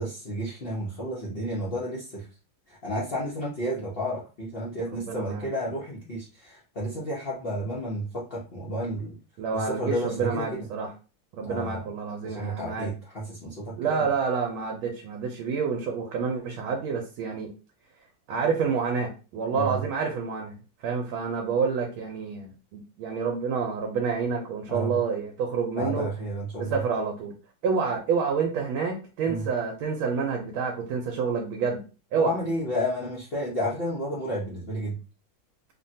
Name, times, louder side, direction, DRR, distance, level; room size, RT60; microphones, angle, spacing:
voice 1, 0.0-2.3 2.7-9.2 9.5-10.6 11.4-11.8 12.2-14.1 19.5-19.8 24.7-25.0 25.8-26.8 29.2-29.5 32.2-35.0, equal, 70° left, -7 dB, 0.5 m, -31 dB
voice 2, 4.9-5.5 6.9-7.0 9.4-10.9 11.3-12.9 13.8-17.5 18.3-20.6 20.8-26.1 26.6-27.3 27.6-31.8 32.1-32.4, right 5 dB, 85° right, 2 dB, 1.4 m, -28 dB
3.5 x 2.1 x 2.6 m, 0.33 s
omnidirectional pair, 2.2 m